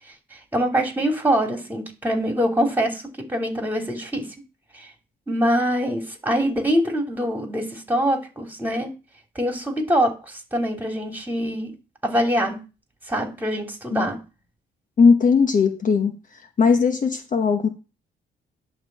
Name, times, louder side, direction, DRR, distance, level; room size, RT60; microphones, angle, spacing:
voice 1, 0.3-3.0 3.3-4.3 4.7-4.9 5.3-8.9 9.3-11.7 12.0-12.6 13.1-14.2, equal, 10° right, 3 dB, 3.0 m, -24 dB
voice 2, 15.0-16.2 16.6-17.7, left 5 dB, 40° left, 7 dB, 1.1 m, -18 dB
11.0 x 3.7 x 7.4 m, 0.31 s
cardioid pair, 90°, 20 cm